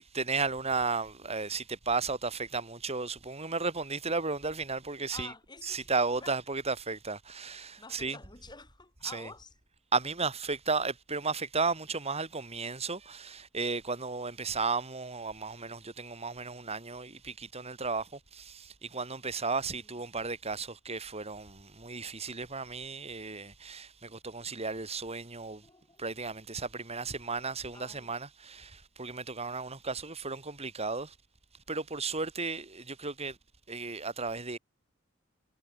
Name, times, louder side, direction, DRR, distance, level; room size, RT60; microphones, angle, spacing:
voice 1, 0.0-5.3 5.6-8.2 9.0-9.3 9.9-25.7 26.0-31.2 31.7-33.4 33.7-34.6, right 4 dB, 30° right, 3.8 m, -34 dB
voice 2, 5.1-6.4 7.8-9.5 19.8-19.9 25.6-26.0 27.7-28.1, left 3 dB, 20° left, 7.6 m, -49 dB
head